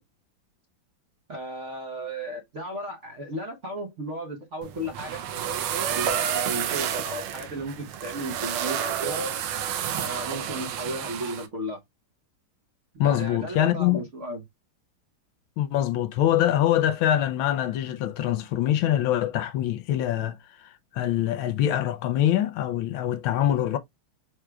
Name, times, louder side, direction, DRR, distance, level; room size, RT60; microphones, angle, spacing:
voice 1, 1.3-5.2 5.9-9.3 9.9-11.8 13.0-14.4, right 1 dB, 50° right, 0.9 m, -34 dB
sound 1, 4.6-11.5, right 9 dB, 85° right, 1.6 m, -30 dB
voice 2, 13.0-14.0 15.6-23.8, left 12 dB, 80° left, 1.3 m, -24 dB
4.8 x 4.5 x 2.2 m
omnidirectional pair, 2.3 m